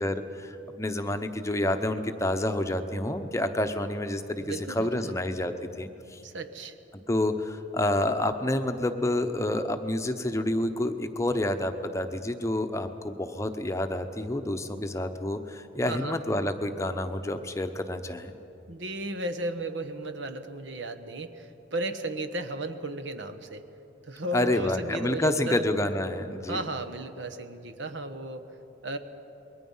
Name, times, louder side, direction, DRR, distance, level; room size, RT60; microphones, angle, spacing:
voice 1, 0.0-6.2 7.1-18.3 24.3-26.6, left 1 dB, 15° left, 7 dB, 0.8 m, -29 dB
voice 2, 4.4-5.1 6.2-6.8 15.9-16.2 18.7-23.6 24.0-25.6 26.5-28.5 28.8-29.0, right 2 dB, 65° right, 8 dB, 1.3 m, -34 dB
28.0 x 21.5 x 5.6 m, 2.8 s
head